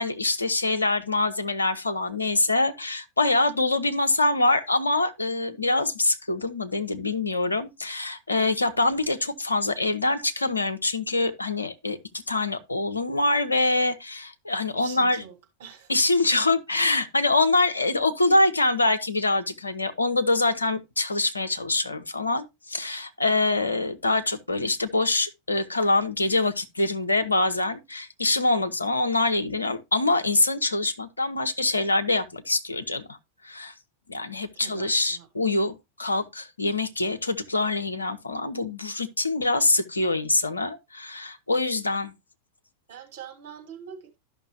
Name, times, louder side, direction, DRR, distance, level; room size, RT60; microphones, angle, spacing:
voice 1, 0.0-15.2 15.9-33.1 33.4-33.7 34.1-42.1, left 2 dB, 80° left, 0.7 m, -25 dB
voice 2, 14.7-15.3 15.6-15.9 23.2-23.6 34.6-35.3 41.5-41.6 42.9-44.1, right 8 dB, 55° right, 2.2 m, -44 dB
12.5 x 5.8 x 2.7 m
figure-of-eight pair, 90°, 0 cm